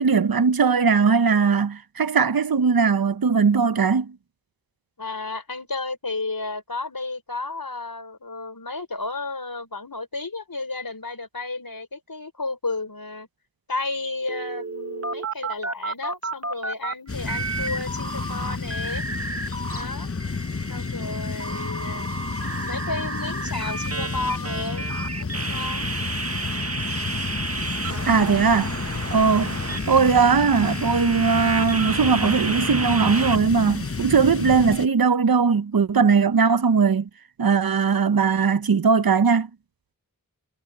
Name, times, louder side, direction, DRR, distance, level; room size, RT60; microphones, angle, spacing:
voice 1, 0.0-4.1 28.1-28.7 29.1-29.6 29.9-37.1 37.4-39.5, right 5 dB, 80° right, 0.7 m, -19 dB
voice 2, 5.0-13.3 13.7-19.0 19.7-20.1 20.7-22.2 22.6-24.9 25.2-25.9, left 3 dB, 75° left, 4.6 m, -32 dB
sound 1, 14.3-16.9 17.2-19.8 20.2-33.4, right 3 dB, 45° right, 1.2 m, -32 dB
sound 2, 17.1-34.9, left 4 dB, 40° left, 0.9 m, -31 dB
wide cardioid pair, 40°, 35 cm